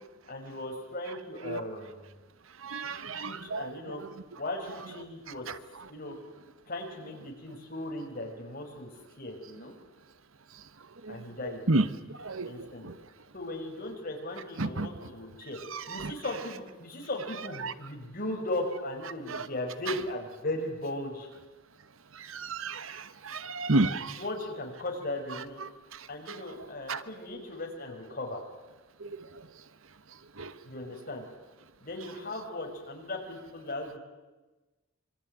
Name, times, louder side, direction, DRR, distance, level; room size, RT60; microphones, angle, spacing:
voice 1, 0.3-2.1 3.1-4.0 4.4-5.5 5.9-6.2 6.7-8.9 9.2-9.7 11.1-11.7 12.5-12.9 13.3-15.6 15.9-21.3 24.2-25.6 26.1-28.4 30.6-31.2 31.8-34.0, left 1 dB, 45° left, 5.7 m, -37 dB
voice 2, 2.6-3.7 11.0-11.2 11.7-11.8 12.2-12.9 14.6-14.9 15.7-16.1 17.6-17.7 19.3-19.4 22.3-24.2 26.3-26.4 26.9-27.0 29.0-29.2 30.4-30.5, right 2 dB, 75° right, 1.2 m, -31 dB
26.0 x 24.0 x 9.3 m
head